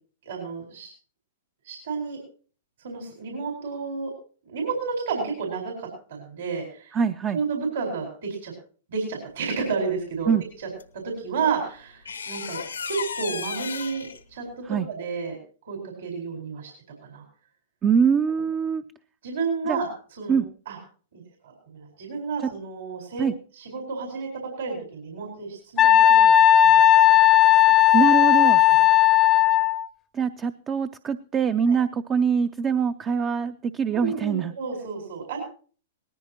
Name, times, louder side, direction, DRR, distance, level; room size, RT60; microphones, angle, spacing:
voice 1, 0.2-0.9 1.7-2.2 2.8-4.1 4.5-7.0 7.3-8.5 8.9-10.3 11.0-12.6 12.8-15.4 15.6-16.7 17.0-17.2 19.2-19.9 20.2-20.4 20.7-20.8 21.4-23.3 23.5-26.2 26.6-26.9 28.6-28.8 31.7-31.8 33.9-35.4, right 5 dB, 70° right, 0 dB, 4.6 m, -31 dB
voice 2, 6.9-7.4 10.3-10.4 14.6-14.9 17.8-18.8 19.7-19.8 20.3-20.5 22.4-22.5 23.2-23.3 27.9-28.6 30.1-34.5, right 6 dB, 25° right, 11 dB, 0.5 m, -23 dB
sound 1, 10.8-10.9 12.0-14.2, left 6 dB, 85° left, 1.0 m, -33 dB
Wind instrument woodwind instrument, 25.8-29.9, left 11 dB, 25° left, 0.7 m, -16 dB
19.0 x 14.5 x 2.9 m, 0.42 s
hypercardioid pair, 115°, 0 cm